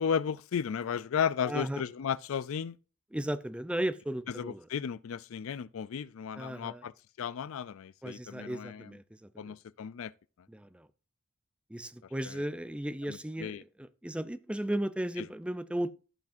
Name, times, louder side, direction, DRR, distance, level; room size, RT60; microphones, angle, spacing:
voice 1, 0.0-2.8 4.4-6.9 7.2-8.9 9.4-10.1 13.1-13.6, left 7 dB, 80° left, 0.4 m, -34 dB
voice 2, 1.4-1.8 3.1-4.7 6.3-6.9 8.0-9.6 10.5-10.9 11.7-15.9, right 1 dB, 5° right, 0.5 m, -35 dB
14.5 x 6.0 x 2.6 m
head